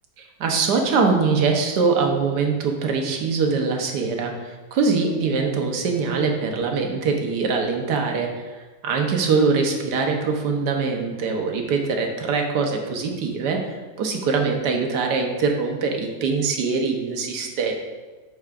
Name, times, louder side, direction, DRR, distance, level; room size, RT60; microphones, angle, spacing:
voice 1, 0.2-8.4 8.8-17.7, right 4 dB, 85° right, 2 dB, 1.5 m, -23 dB
11.0 x 4.7 x 2.4 m, 1.3 s
omnidirectional pair, 1.8 m